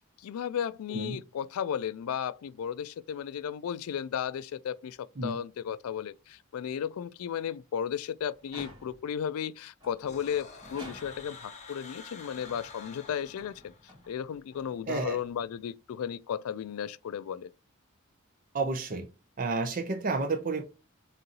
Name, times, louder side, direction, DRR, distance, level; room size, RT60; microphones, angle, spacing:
voice 1, 0.2-13.7 14.1-17.5, left 8 dB, 75° left, 0.3 m, -34 dB
sound 1, 8.4-9.2 9.8-11.5 12.1-15.7, left 1 dB, 20° right, 2.3 m, -51 dB
sound 2, 10.1-14.1, left 4 dB, 30° left, 1.0 m, -48 dB
voice 2, 14.9-15.2 18.5-19.1 19.4-20.6, right 3 dB, 40° right, 0.6 m, -30 dB
3.9 x 3.8 x 2.8 m
head